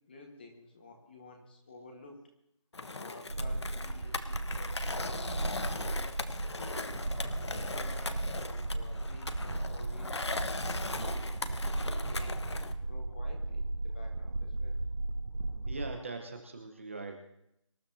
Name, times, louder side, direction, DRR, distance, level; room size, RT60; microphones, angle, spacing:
voice 1, 0.1-2.2 2.9-6.0 6.5-6.9 7.4-11.3 12.1-14.8, left 2 dB, 20° left, 2 dB, 1.6 m, -52 dB
Skateboard, 2.7-12.7, left 3 dB, 55° left, 1.1 m, -39 dB
sound 1, 3.3-15.9, right 2 dB, 75° right, 1.2 m, -36 dB
voice 2, 15.6-17.2, right 3 dB, 25° right, 4 dB, 1.1 m, -41 dB
25.5 x 13.5 x 2.9 m, 0.75 s
figure-of-eight pair, 175°, 17 cm